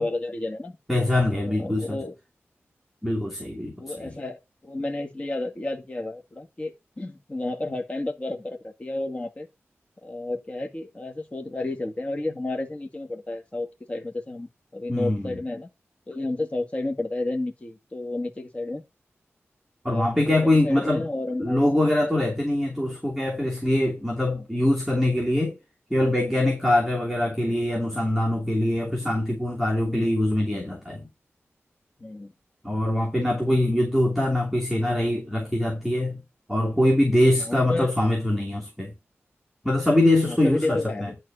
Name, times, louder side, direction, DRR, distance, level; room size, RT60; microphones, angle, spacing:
voice 1, 0.0-0.8 1.5-2.1 3.8-9.5 10.0-15.7 16.1-18.8 19.9-20.1 20.4-21.6 24.3-24.5 29.9-30.1 32.0-32.3 37.3-37.9 40.3-41.2, left 2 dB, 25° left, 2.0 m, -31 dB
voice 2, 0.9-2.0 3.0-4.1 14.9-15.4 19.8-21.0 21.4-25.6 25.9-31.1 32.6-36.2 36.5-38.9 39.6-41.1, left 1 dB, ahead, 2.8 m, -23 dB
11.0 x 4.4 x 5.6 m
wide cardioid pair, 115°, 5 cm